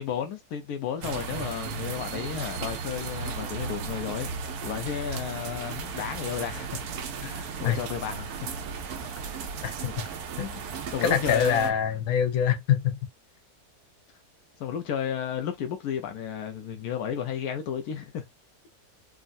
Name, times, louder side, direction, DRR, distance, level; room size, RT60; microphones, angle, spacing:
voice 1, 0.0-4.3 4.6-6.8 7.2-8.4 10.9-11.7 14.6-18.2, left 8 dB, 90° left, 1.2 m, -33 dB
sound 1, 1.0-11.7, right 5 dB, 80° right, 1.1 m, -35 dB
voice 2, 11.0-13.0, left 8 dB, 70° left, 1.2 m, -24 dB
3.6 x 2.1 x 2.4 m
omnidirectional pair, 1.6 m